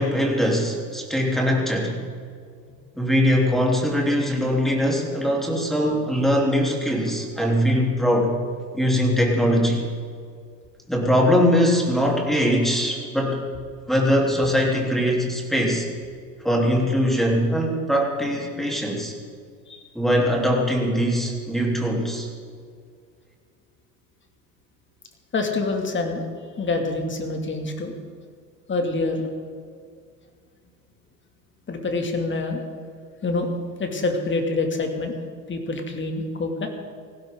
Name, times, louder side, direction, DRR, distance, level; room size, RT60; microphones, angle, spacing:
voice 1, 0.0-2.0 3.0-8.3 8.7-9.8 10.9-13.4 13.9-15.9 16.4-19.1 19.9-22.3, equal, ahead, -1 dB, 3.8 m, -21 dB
voice 2, 25.3-26.2 26.6-27.9 28.7-29.3 31.7-32.6 33.2-35.2 35.5-36.7, left 3 dB, 25° left, 3 dB, 2.8 m, -26 dB
19.5 x 16.0 x 4.0 m, 2.1 s
hypercardioid pair, 90°, 49 cm